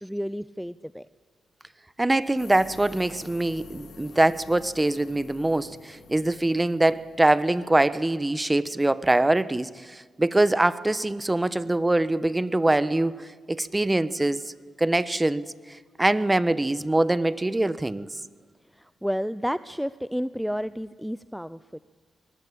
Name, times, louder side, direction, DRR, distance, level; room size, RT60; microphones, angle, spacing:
voice 1, 0.0-1.1 18.7-21.8, equal, ahead, 15 dB, 0.7 m, -31 dB
voice 2, 2.0-14.5 14.8-18.1, right 2 dB, 20° right, 15 dB, 1.3 m, -23 dB
sound 1, 2.4-8.5, left 5 dB, 75° left, 3.9 m, -49 dB
24.5 x 20.0 x 8.9 m, 1.5 s
supercardioid pair, 50°, 0 cm